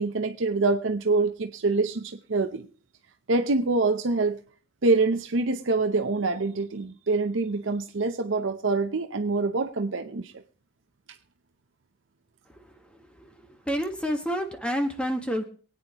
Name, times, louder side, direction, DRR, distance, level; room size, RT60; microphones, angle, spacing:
voice 1, 0.0-2.7 3.3-4.4 4.8-10.3, right 3 dB, 70° right, 6 dB, 0.7 m, -25 dB
voice 2, 13.2-15.4, equal, 5° left, 5 dB, 1.5 m, -29 dB
24.0 x 9.2 x 3.0 m, 0.41 s
head